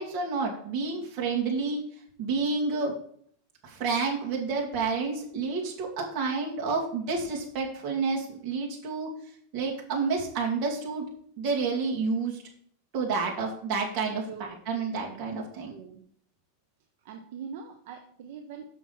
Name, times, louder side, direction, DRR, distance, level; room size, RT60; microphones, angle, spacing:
voice 1, 0.0-1.8 2.2-2.9 3.6-9.1 9.5-11.1 11.4-12.4 12.9-15.7, right 4 dB, 40° right, -2 dB, 2.5 m, -29 dB
voice 2, 15.7-16.0 17.0-18.7, right 6 dB, 60° right, 3 dB, 1.0 m, -42 dB
7.3 x 5.8 x 5.6 m, 0.63 s
supercardioid pair, 165°, 0 cm